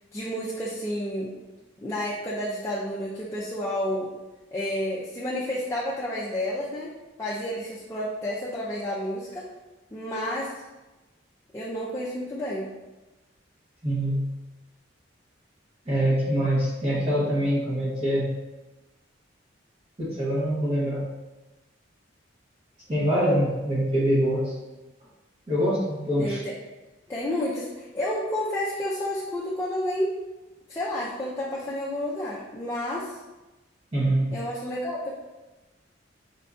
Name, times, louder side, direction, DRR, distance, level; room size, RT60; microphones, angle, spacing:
voice 1, 0.1-1.3 1.8-4.1 4.5-6.9 7.2-9.5 9.9-10.5 11.5-12.7 26.2-26.5 27.1-30.1 30.7-33.2 34.3-35.1, left 1 dB, 15° left, -8 dB, 0.4 m, -30 dB
voice 2, 13.8-14.3 15.9-18.3 20.0-21.1 22.9-24.5 25.5-26.4 33.9-34.3, equal, 30° right, -8 dB, 0.8 m, -24 dB
5.1 x 2.6 x 2.3 m, 1.1 s
head